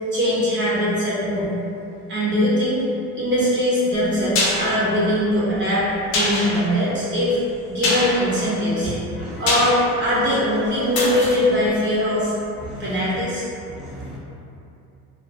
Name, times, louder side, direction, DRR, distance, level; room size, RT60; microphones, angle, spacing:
voice 1, 0.1-1.5 2.1-2.8 3.1-5.9 6.1-7.4 7.7-12.3 12.8-13.4, equal, 40° right, -8 dB, 0.8 m, -21 dB
sound 1, 3.9-12.8 13.1-13.2, left 1 dB, 90° left, 0.7 m, -27 dB
voice 2, 13.8-14.2, right 1 dB, ahead, -11 dB, 0.7 m, -35 dB
2.8 x 2.4 x 2.3 m, 2.7 s
cardioid pair, 105°, 30 cm